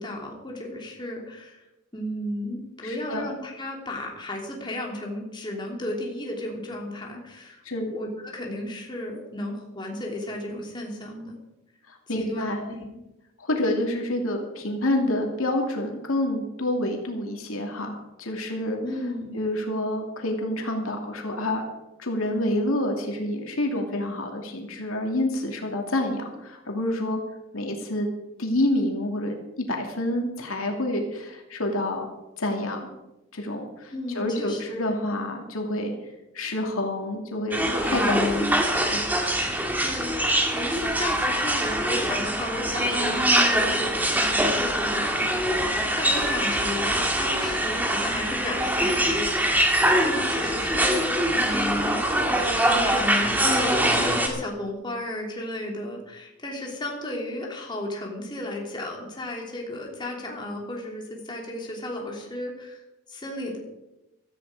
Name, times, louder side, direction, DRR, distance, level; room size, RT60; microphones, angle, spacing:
voice 1, 0.0-1.6 1.9-11.3 12.1-13.0 18.8-19.3 33.9-34.8 39.8-49.1 50.0-52.3 52.7-62.8 63.1-63.6, left 1 dB, 20° left, -1 dB, 2.9 m, -34 dB
voice 2, 2.8-3.2 7.6-7.9 11.9-12.7 13.4-18.8 19.3-21.7 22.0-27.2 27.5-28.1 28.4-29.4 29.7-32.1 32.4-32.9 33.3-35.9 36.3-38.6 38.9-39.0, left 1 dB, 80° left, 2 dB, 2.7 m, -28 dB
sound 1, 37.5-54.3, right 1 dB, 10° right, 1.9 m, -23 dB
15.5 x 13.5 x 4.9 m, 0.94 s
head